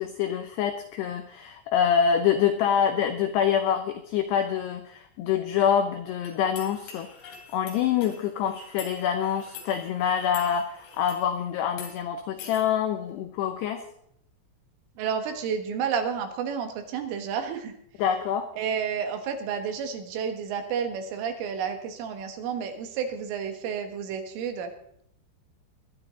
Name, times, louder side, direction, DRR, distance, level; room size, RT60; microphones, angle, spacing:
voice 1, 0.0-7.1 7.5-13.8 18.0-18.5, left 8 dB, 85° left, 8 dB, 2.4 m, -26 dB
sound 1, 6.2-11.3 11.7-11.9 12.4-12.6, left 7 dB, 65° left, 4.8 m, -45 dB
voice 2, 15.0-17.7 18.6-24.7, right 7 dB, 75° right, 6 dB, 3.9 m, -31 dB
22.5 x 11.0 x 3.9 m, 0.71 s
omnidirectional pair, 5.9 m